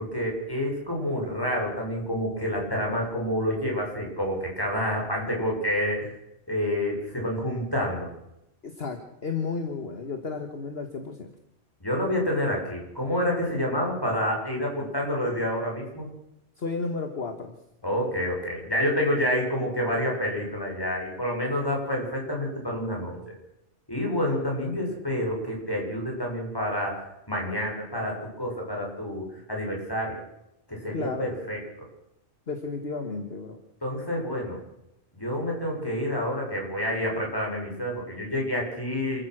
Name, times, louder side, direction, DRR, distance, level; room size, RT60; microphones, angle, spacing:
voice 1, 0.0-6.1 6.5-8.1 11.8-16.1 17.8-23.3 23.9-30.2 30.7-31.6 33.8-34.6 35.1-39.2, equal, 15° left, -1 dB, 7.0 m, -28 dB
voice 2, 8.6-11.3 16.6-17.6 30.9-31.3 32.5-33.6, left 4 dB, 50° left, 6 dB, 1.9 m, -33 dB
27.5 x 15.0 x 6.4 m, 0.84 s
omnidirectional pair, 1.3 m